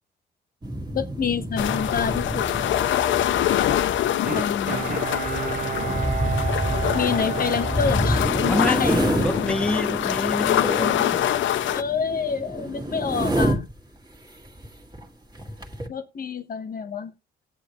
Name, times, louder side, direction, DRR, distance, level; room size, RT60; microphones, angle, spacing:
sound 1, 0.6-13.8 14.5-14.7 14.9-15.1 15.3-15.9, equal, 20° right, 2.0 m, -28 dB
voice 1, 0.9-2.5 4.3-4.8 6.9-9.0 11.7-13.6 15.9-17.1, left 6 dB, 45° left, 1.2 m, -27 dB
sound 2, 1.6-11.8, left 12 dB, 75° left, 0.7 m, -25 dB
Bowed string instrument, 4.3-8.8 9.2-9.3, right 10 dB, 45° right, 0.7 m, -31 dB
voice 2, 8.4-11.3, left 2 dB, 5° left, 0.8 m, -26 dB
18.5 x 8.2 x 3.1 m
cardioid pair, 90°, 20 cm